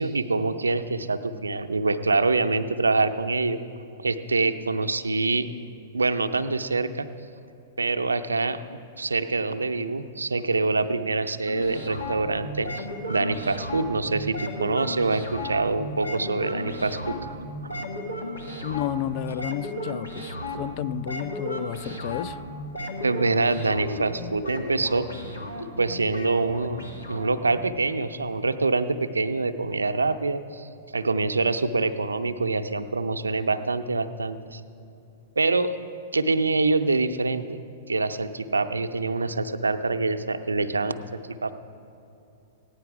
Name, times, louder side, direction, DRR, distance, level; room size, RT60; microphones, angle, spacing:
voice 1, 0.0-3.6 4.0-5.5 5.9-7.1 7.8-8.6 9.0-17.3 17.6-17.8 23.0-25.1 25.8-30.7 30.9-34.6 35.4-35.8 36.1-37.6 37.9-41.0 41.4-41.5, right 3 dB, 85° right, 8 dB, 0.5 m, -25 dB
sound 1, 11.5-27.6, left 1 dB, 90° left, 1.5 m, -35 dB
voice 2, 18.6-22.4, left 13 dB, 45° left, 15 dB, 0.3 m, -32 dB
15.5 x 10.0 x 4.8 m, 2.8 s
hypercardioid pair, 110°, 0 cm